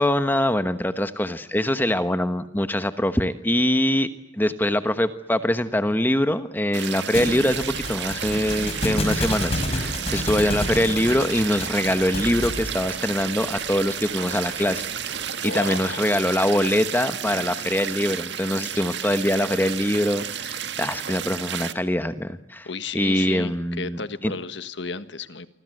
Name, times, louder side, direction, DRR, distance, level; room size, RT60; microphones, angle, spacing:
voice 1, 0.0-4.1 4.3-14.9 15.4-22.7 22.9-24.3, left 1 dB, 10° left, 10 dB, 1.1 m, -23 dB
sound 1, 6.7-21.7, right 8 dB, 60° right, 1.7 m, -32 dB
Thump thud, 7.1-12.7, left 1 dB, 30° left, 5.5 m, -29 dB
sound 2, 7.5-15.3, right 2 dB, 40° right, 6.6 m, -43 dB
voice 2, 8.3-8.7 15.4-16.1 22.6-25.5, left 4 dB, 65° left, 12 dB, 1.5 m, -33 dB
28.0 x 25.0 x 7.8 m, 0.75 s
head